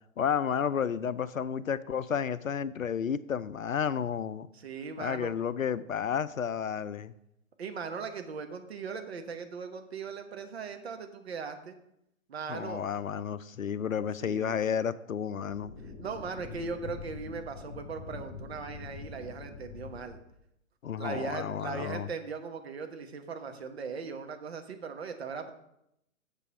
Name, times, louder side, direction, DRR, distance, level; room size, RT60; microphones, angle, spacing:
voice 1, 0.2-4.5 5.0-7.1 12.5-15.7 20.8-22.1, left 7 dB, 70° left, 0.6 m, -31 dB
voice 2, 4.5-5.3 7.6-11.7 12.3-12.8 14.2-14.6 15.8-20.2 21.0-25.5, right 5 dB, 50° right, 1.2 m, -39 dB
sound 1, 15.5-20.4, left 5 dB, 35° left, 2.8 m, -44 dB
7.0 x 6.8 x 5.8 m
figure-of-eight pair, 125°, 41 cm